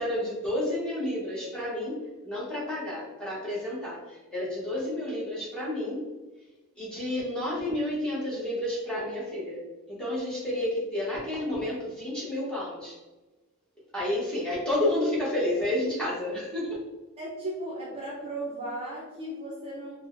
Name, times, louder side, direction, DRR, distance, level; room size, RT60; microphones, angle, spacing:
voice 1, 0.0-6.0 6.8-13.0 13.9-16.8, left 1 dB, 5° left, -7 dB, 0.9 m, -30 dB
voice 2, 17.2-20.1, right 1 dB, 25° right, -5 dB, 0.6 m, -36 dB
4.6 x 2.1 x 2.5 m, 1.2 s
head